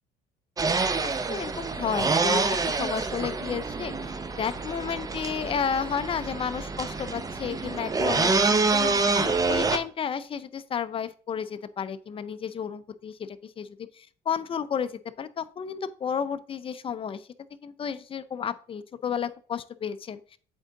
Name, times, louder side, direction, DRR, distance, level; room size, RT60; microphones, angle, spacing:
sound 1, 0.6-9.8, right 3 dB, 20° right, 0.6 m, -27 dB
voice 1, 0.8-8.3 8.7-14.9 15.2-17.2 17.6-20.2, left 7 dB, 30° left, 13 dB, 0.5 m, -32 dB
7.9 x 3.7 x 4.0 m, 0.42 s
cardioid pair, 110°, 17 cm